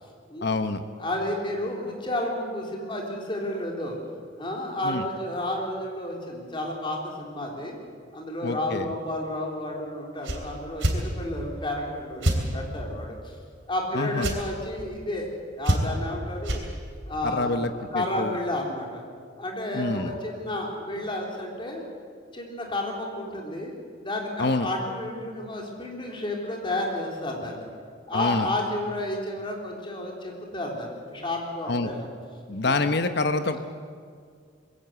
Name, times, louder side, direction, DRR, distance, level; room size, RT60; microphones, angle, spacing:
voice 1, 0.4-0.8 4.8-5.1 8.4-8.9 13.9-14.4 17.2-18.4 19.7-20.1 24.4-24.7 28.1-28.5 31.7-31.9 32.5-33.6, left 3 dB, 60° left, 8 dB, 1.0 m, -26 dB
voice 2, 1.0-4.0 4.4-7.8 8.1-13.3 13.7-15.3 15.6-16.6 17.1-17.6 17.9-19.0 19.4-21.8 22.3-27.6 28.1-32.1, left 1 dB, 25° left, 0 dB, 3.7 m, -31 dB
sound 1, 10.2-10.4 10.8-11.0 12.2-12.4 14.2-14.4 15.6-16.1 16.4-16.6, right 1 dB, 85° right, 3.3 m, -24 dB
21.5 x 17.0 x 8.1 m, 2.1 s
head